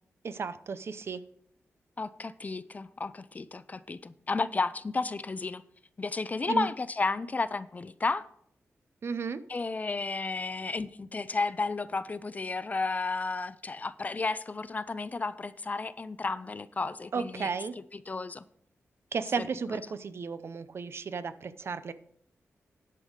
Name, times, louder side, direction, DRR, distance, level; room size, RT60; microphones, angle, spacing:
voice 1, 0.2-1.2 6.5-6.7 9.0-9.4 17.1-17.8 19.1-21.9, right 5 dB, 55° right, 13 dB, 0.6 m, -34 dB
voice 2, 2.0-5.6 6.0-8.3 9.5-17.5 17.9-18.4 19.4-19.5, left 3 dB, 30° left, 15 dB, 0.4 m, -32 dB
10.5 x 5.4 x 6.4 m, 0.67 s
wide cardioid pair, 115°, 5 cm